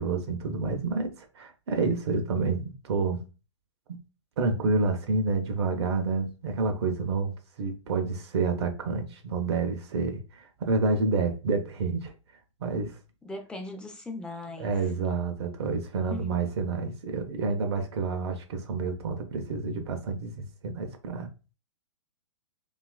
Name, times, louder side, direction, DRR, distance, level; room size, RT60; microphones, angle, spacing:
voice 1, 0.0-3.2 3.9-4.0 4.4-12.1 12.6-13.0 14.6-21.3, right 4 dB, 55° right, 0.5 m, -29 dB
voice 2, 13.2-14.7 16.1-16.3, left 2 dB, 5° left, 0.3 m, -39 dB
2.8 x 2.3 x 2.2 m
figure-of-eight pair, 115°, 16 cm